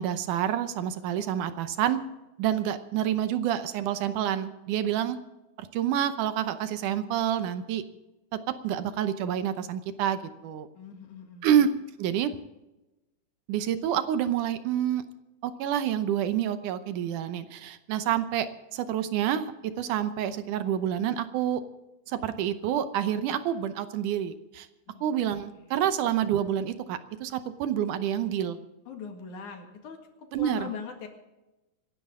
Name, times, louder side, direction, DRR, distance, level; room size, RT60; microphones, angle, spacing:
voice 1, 0.0-2.0 2.4-5.2 5.6-7.8 8.3-8.4 8.6-10.7 11.4-11.7 12.0-12.4 13.5-15.0 15.4-18.5 18.7-19.5 19.8-21.6 22.1-24.7 25.0-28.6 30.3-30.7, right 10 dB, 75° right, 11 dB, 2.3 m, -28 dB
voice 2, 10.7-11.5 24.9-25.1 25.6-25.7 28.9-31.1, left 6 dB, 70° left, 4 dB, 3.4 m, -41 dB
26.5 x 11.5 x 3.7 m, 1.0 s
omnidirectional pair, 3.7 m